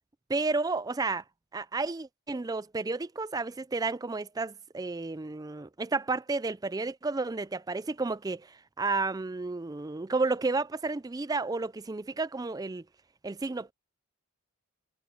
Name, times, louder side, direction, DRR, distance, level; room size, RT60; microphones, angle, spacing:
voice 1, 0.3-1.2 1.5-8.4 8.8-12.8 13.2-13.7, right 3 dB, 15° right, 0.3 m, -31 dB
head